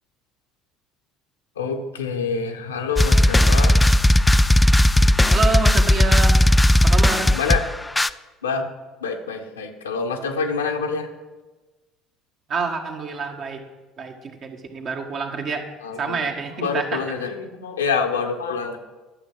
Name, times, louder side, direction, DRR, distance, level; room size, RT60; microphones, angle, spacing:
voice 1, 1.6-3.9 4.3-4.4 5.0-5.2 7.3-7.7 8.4-8.7 9.0-11.1 15.8-16.2 16.6-18.8, left 5 dB, 75° left, 4 dB, 1.1 m, -26 dB
sound 1, 3.0-8.1, left 1 dB, 10° left, 0.4 m, -16 dB
voice 2, 5.3-6.4 6.8-7.3 12.5-13.6 14.0-15.7 16.0-17.0, right 4 dB, 45° right, 3 dB, 1.7 m, -27 dB
12.0 x 7.5 x 6.2 m, 1.2 s
figure-of-eight pair, 60°, 0 cm